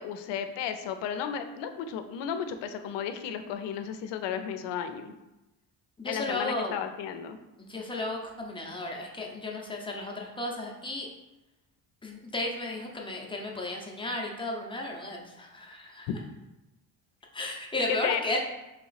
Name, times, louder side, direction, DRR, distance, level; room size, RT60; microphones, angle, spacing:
voice 1, 0.0-5.1 6.0-7.4 18.0-18.2, left 8 dB, 85° left, 9 dB, 0.5 m, -34 dB
voice 2, 6.0-6.8 7.6-11.1 12.0-16.1 17.3-18.4, left 2 dB, 10° left, -1 dB, 0.5 m, -34 dB
3.2 x 2.9 x 4.0 m, 0.98 s
cardioid pair, 125°, 42 cm